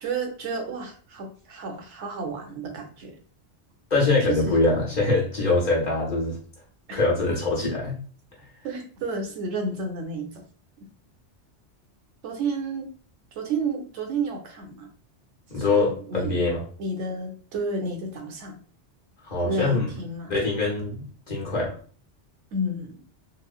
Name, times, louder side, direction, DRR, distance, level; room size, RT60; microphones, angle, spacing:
voice 1, 0.0-3.2 4.2-4.6 6.9-7.0 8.6-10.4 12.2-12.9 13.3-14.9 15.6-16.4 16.8-18.5 19.4-20.3 22.5-23.0, right 3 dB, 80° right, 3 dB, 0.9 m, -31 dB
voice 2, 3.9-6.4 6.9-8.0 15.5-16.6 19.2-19.9 20.3-21.8, left 3 dB, 45° left, -3 dB, 0.8 m, -23 dB
3.0 x 2.0 x 2.3 m, 0.42 s
omnidirectional pair, 1.2 m